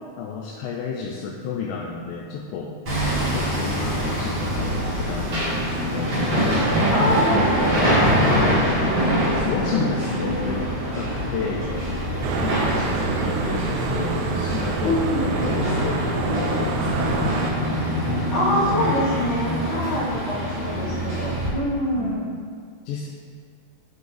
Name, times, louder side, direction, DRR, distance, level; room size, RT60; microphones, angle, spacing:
voice 1, 0.2-2.8 3.1-6.3 7.0-7.1 8.2-8.5 8.8-11.7 12.4-17.5 18.7-18.8 22.0-22.4 22.9-23.1, left 5 dB, 85° left, -1 dB, 2.2 m, -32 dB
Hammer, 2.9-21.5, equal, 40° right, 2.6 m, -24 dB
voice 2, 6.9-8.6 14.8-15.2 18.3-22.2, left 1 dB, 55° left, -9 dB, 3.7 m, -25 dB
sound 1, 12.2-17.5, right 5 dB, 80° right, 2.0 m, -28 dB
11.5 x 6.2 x 3.4 m, 2.1 s
omnidirectional pair, 3.6 m